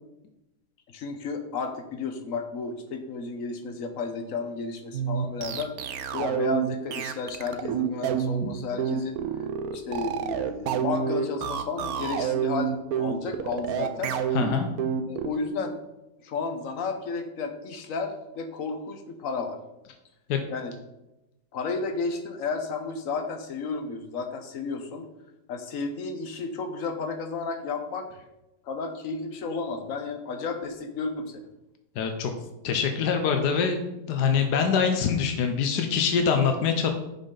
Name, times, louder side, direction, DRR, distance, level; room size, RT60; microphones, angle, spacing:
voice 1, 0.9-9.2 9.7-14.1 15.1-15.8 16.2-19.6 20.5-20.7 21.5-25.1 25.5-28.1 28.6-31.4, left 4 dB, 60° left, 6 dB, 1.3 m, -32 dB
sound 1, 4.9-15.3, right 8 dB, 70° right, 1.1 m, -28 dB
voice 2, 14.3-14.7 20.3-20.4 32.0-32.3 32.6-36.9, left 6 dB, 85° left, 5 dB, 1.4 m, -24 dB
10.5 x 5.6 x 3.9 m, 0.93 s
omnidirectional pair, 1.7 m